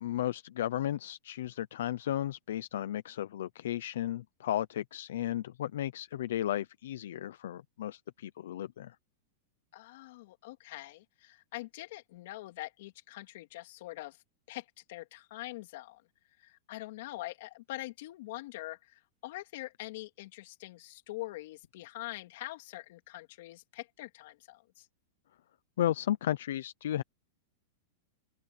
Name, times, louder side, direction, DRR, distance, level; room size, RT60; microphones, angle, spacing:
voice 1, 0.0-9.0 25.8-27.0, left 12 dB, 75° left, 0.7 m, -34 dB
voice 2, 9.7-14.2 14.5-16.0 16.4-24.9, left 18 dB, 55° left, 3.2 m, -44 dB
open air
supercardioid pair, 165°, 0 cm